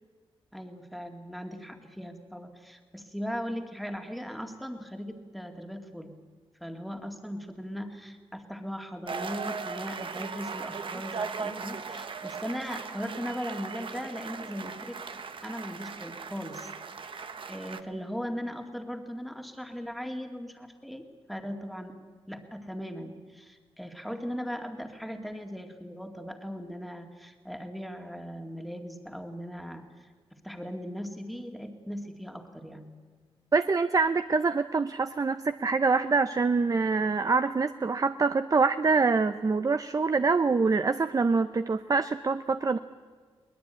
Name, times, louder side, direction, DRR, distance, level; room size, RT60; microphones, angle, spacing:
voice 1, 0.5-6.2 6.6-15.0 15.4-16.7 17.0-22.0 22.3-32.9, equal, ahead, 4 dB, 2.2 m, -38 dB
sound 1, 9.1-17.8, right 5 dB, 60° right, 1.2 m, -38 dB
voice 2, 33.5-42.8, right 4 dB, 35° right, 11 dB, 0.6 m, -25 dB
22.0 x 19.5 x 9.0 m, 1.5 s
wide cardioid pair, 95°, 10 cm